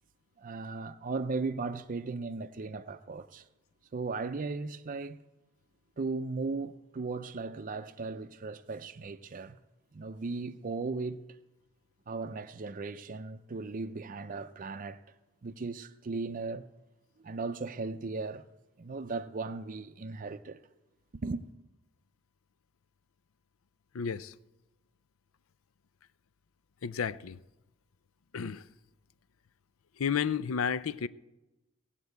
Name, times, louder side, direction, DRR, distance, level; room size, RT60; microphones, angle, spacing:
voice 1, 0.4-3.5 3.9-5.2 6.0-9.6 9.9-11.4 12.1-15.0 15.4-16.7 17.2-18.5 18.8-20.6 21.2-21.4, right 3 dB, 40° right, 0.5 m, -37 dB
voice 2, 23.9-24.3 26.8-27.4 28.3-28.6 30.0-31.1, left 7 dB, 90° left, 0.5 m, -32 dB
17.5 x 7.4 x 8.1 m
head